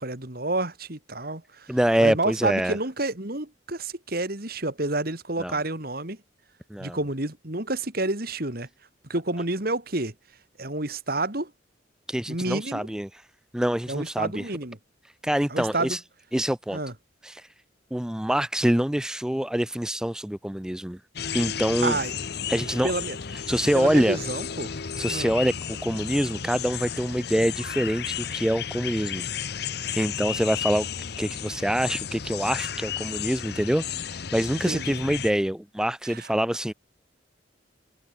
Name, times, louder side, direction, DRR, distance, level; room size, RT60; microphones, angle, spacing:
voice 1, 0.0-1.7 2.0-6.2 6.8-8.7 9.1-10.1 10.6-11.5 12.3-12.9 13.9-14.8 15.5-16.0 16.7-16.9 21.8-22.1 22.8-23.2 23.7-24.7 25.1-25.3 34.7-35.0 36.0-36.3, right 2 dB, 50° right, 3.1 m, -29 dB
voice 2, 1.7-2.8 5.4-5.6 6.7-7.0 12.1-13.2 13.5-14.5 15.2-16.0 16.3-16.8 17.2-17.5 17.9-21.0 21.3-22.0 22.5-22.9 23.3-24.2 25.0-29.3 29.9-30.9 31.2-36.7, equal, 5° right, 0.3 m, -25 dB
sound 1, 21.2-35.3, left 8 dB, 55° left, 0.8 m, -33 dB
head